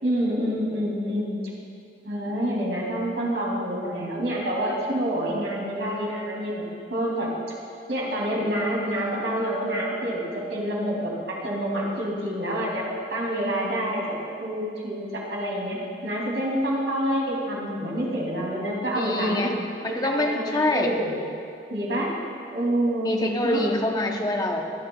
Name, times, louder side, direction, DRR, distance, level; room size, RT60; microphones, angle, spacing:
voice 1, 0.0-1.4 2.0-7.3 7.9-10.2 10.5-15.8 16.0-19.5 19.8-21.2 21.7-22.1 22.5-23.2 23.4-23.6, equal, 80° right, -4 dB, 2.7 m, -27 dB
voice 2, 18.9-20.9 23.0-24.7, left 1 dB, 20° left, 3 dB, 0.8 m, -25 dB
22.5 x 8.2 x 2.3 m, 2.6 s
head